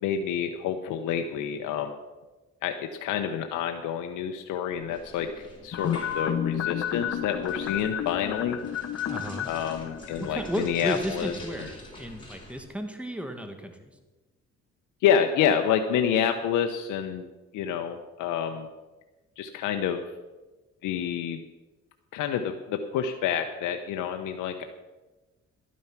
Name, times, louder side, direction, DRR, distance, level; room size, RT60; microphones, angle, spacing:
voice 1, 0.0-1.9 2.6-8.6 9.4-11.7 15.0-17.3 17.5-18.7 19.4-20.0 20.8-21.4 22.1-24.6, left 8 dB, 90° left, 5 dB, 0.8 m, -28 dB
sound 1, 4.7-12.6, left 2 dB, 15° left, 4.1 m, -47 dB
sound 2, 5.7-11.1 11.4-11.5, left 9 dB, 50° left, 1.0 m, -32 dB
voice 2, 9.0-9.5 10.2-13.9, right 1 dB, 5° right, 6 dB, 1.7 m, -34 dB
12.0 x 9.4 x 5.8 m, 1.2 s
cardioid pair, 90°, 30 cm